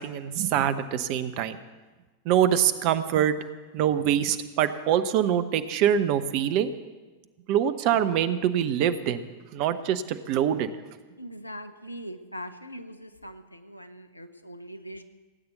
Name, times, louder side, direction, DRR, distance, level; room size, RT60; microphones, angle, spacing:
voice 1, 0.0-1.6 2.2-3.3 3.7-6.7 7.5-10.7, right 10 dB, 45° right, 12 dB, 0.9 m, -24 dB
voice 2, 11.2-15.0, equal, 85° left, 10 dB, 0.9 m, -41 dB
17.5 x 8.8 x 7.9 m, 1.3 s
figure-of-eight pair, 90°, 0 cm